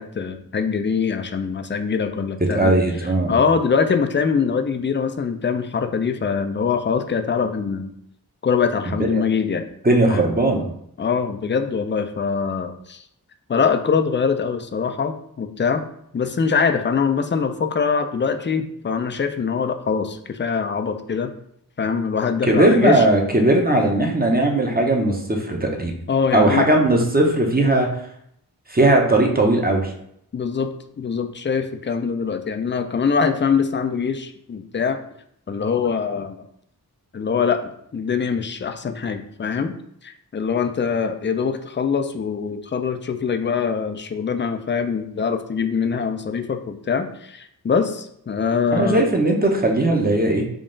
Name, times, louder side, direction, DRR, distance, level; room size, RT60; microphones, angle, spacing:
voice 1, 0.0-2.8 3.3-7.9 8.4-9.6 10.1-10.2 11.0-13.0 13.5-15.8 16.1-21.3 21.8-23.1 26.1-26.7 30.3-35.0 35.5-36.4 37.1-39.7 40.0-49.1, left 6 dB, 30° left, 8 dB, 0.4 m, -23 dB
voice 2, 2.5-3.3 8.9-9.2 9.8-10.7 22.5-25.9 26.3-28.0 28.7-29.9 48.7-50.5, right 1 dB, 25° right, 2 dB, 0.7 m, -18 dB
3.6 x 2.4 x 3.8 m, 0.72 s
wide cardioid pair, 50°, 39 cm